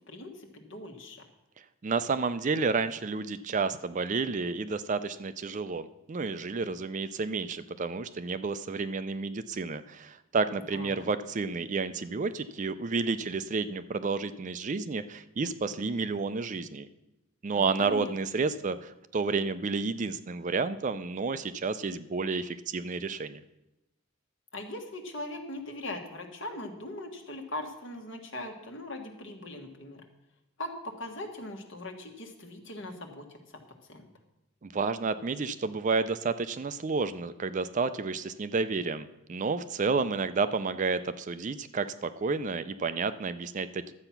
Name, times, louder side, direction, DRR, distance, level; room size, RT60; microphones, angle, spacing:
voice 1, 0.1-1.2 10.7-11.1 17.5-18.4 24.5-30.0 30.6-33.6 33.9-34.1, left 1 dB, 60° left, 3 dB, 1.6 m, -40 dB
voice 2, 1.8-16.9 17.4-23.4 34.6-43.9, right 4 dB, 35° right, 12 dB, 0.4 m, -31 dB
12.0 x 7.9 x 5.8 m, 0.94 s
head